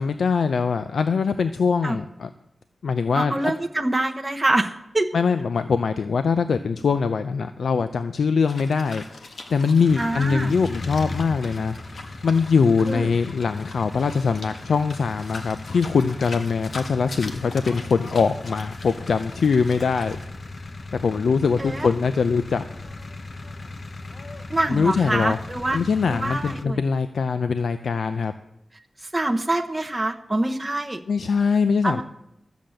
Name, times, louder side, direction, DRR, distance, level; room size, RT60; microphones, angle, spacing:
voice 1, 0.0-2.3 2.8-3.5 5.1-11.8 12.2-20.2 20.9-22.6 24.7-25.4 25.7-28.3 31.1-32.0, left 5 dB, 90° left, 10 dB, 0.5 m, -22 dB
voice 2, 3.1-4.7 4.9-5.1 10.0-10.5 12.9-13.1 21.6-21.9 24.5-25.8 26.1-26.8 29.0-31.0 31.8-32.0, right 2 dB, 15° right, 2 dB, 0.9 m, -25 dB
sound 1, 8.5-20.3, left 3 dB, 70° left, 1.5 m, -42 dB
sound 2, 9.9-26.6, left 2 dB, 45° left, 0.8 m, -37 dB
13.0 x 7.2 x 7.7 m, 0.81 s
wide cardioid pair, 125°, 0 cm